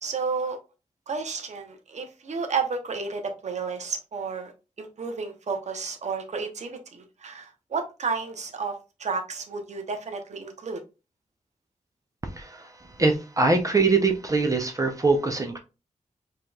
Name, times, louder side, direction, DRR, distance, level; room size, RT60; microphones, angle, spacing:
voice 1, 0.0-0.6 1.1-4.5 4.8-10.8, right 5 dB, 65° right, 6 dB, 0.8 m, -32 dB
voice 2, 12.4-12.7 13.0-15.6, right 3 dB, 25° right, 5 dB, 0.6 m, -23 dB
4.8 x 3.0 x 2.3 m, 0.29 s
wide cardioid pair, 120°, 13 cm